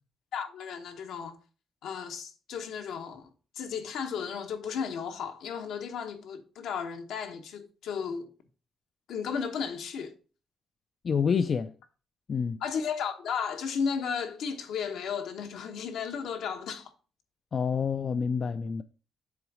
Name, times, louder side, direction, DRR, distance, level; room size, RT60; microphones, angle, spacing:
voice 1, 0.3-1.3 1.8-3.3 3.5-8.3 9.1-10.1 12.6-16.9, left 6 dB, 80° left, 1.1 m, -34 dB
voice 2, 11.0-11.7 12.3-12.6 17.5-18.8, left 6 dB, 45° left, 0.4 m, -28 dB
7.0 x 3.9 x 4.9 m
cardioid pair, 90°, 0 cm